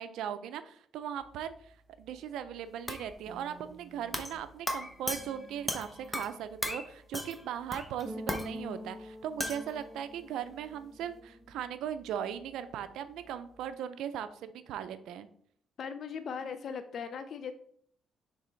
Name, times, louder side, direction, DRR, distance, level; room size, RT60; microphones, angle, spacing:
voice 1, 0.0-1.5 2.0-15.3, right 9 dB, 85° right, 11 dB, 0.4 m, -38 dB
sound 1, 1.1-13.7, equal, 15° right, 1.7 m, -49 dB
sound 2, 2.9-3.1 4.1-4.4 4.7-6.4 6.6-6.9 7.1-7.4 7.7-8.5 9.4-9.7, left 1 dB, 10° left, 0.9 m, -36 dB
voice 2, 15.8-17.5, left 6 dB, 60° left, 10 dB, 0.4 m, -38 dB
6.6 x 3.4 x 4.4 m, 0.63 s
cardioid pair, 90°, 0 cm